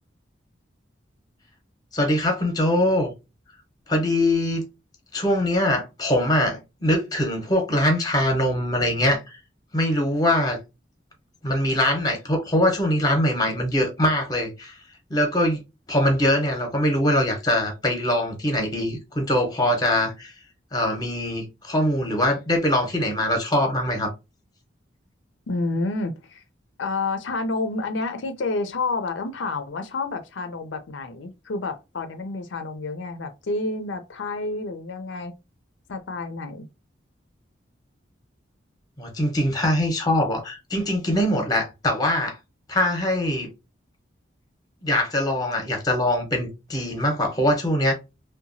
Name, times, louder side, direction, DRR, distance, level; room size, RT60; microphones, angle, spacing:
voice 1, 1.9-3.1 3.9-4.6 5.1-9.4 9.7-10.6 11.4-14.8 15.1-15.6 15.9-20.3 20.7-24.1 39.0-42.4 42.7-43.5 44.8-47.9, left 1 dB, 20° left, 0.7 m, -22 dB
voice 2, 25.5-26.4 26.8-35.3 35.9-36.7, left 3 dB, 80° left, 0.5 m, -29 dB
2.8 x 2.2 x 2.6 m
head